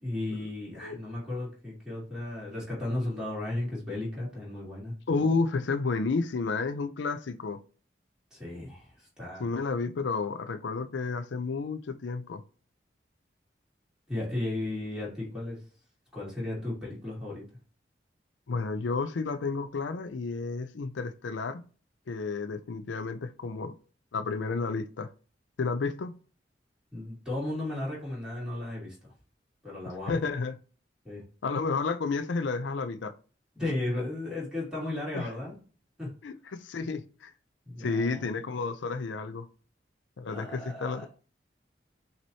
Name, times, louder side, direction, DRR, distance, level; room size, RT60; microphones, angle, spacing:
voice 1, 0.0-4.9 8.3-9.5 14.1-15.6 16.1-17.4 26.9-29.1 29.6-30.2 31.0-31.2 33.5-35.5 36.0-36.1 37.6-38.2 40.3-41.1, left 1 dB, 5° right, 2.6 m, -35 dB
voice 2, 5.1-7.6 9.4-12.4 18.5-21.6 22.1-23.8 24.1-25.1 25.6-26.1 30.1-30.5 31.4-33.1 35.1-35.3 36.2-37.3 37.8-39.5 40.2-41.1, left 4 dB, 85° left, 0.5 m, -31 dB
6.0 x 2.9 x 2.8 m
head